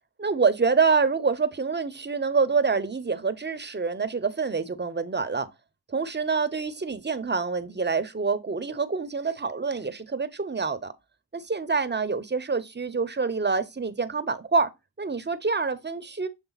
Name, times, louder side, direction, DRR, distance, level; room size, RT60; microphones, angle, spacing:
voice 1, 0.2-5.5 5.9-10.9 11.3-14.7 15.0-16.3, right 4 dB, 25° right, 0.9 m, -26 dB
7.0 x 3.5 x 4.0 m
cardioid pair, 50°, 43 cm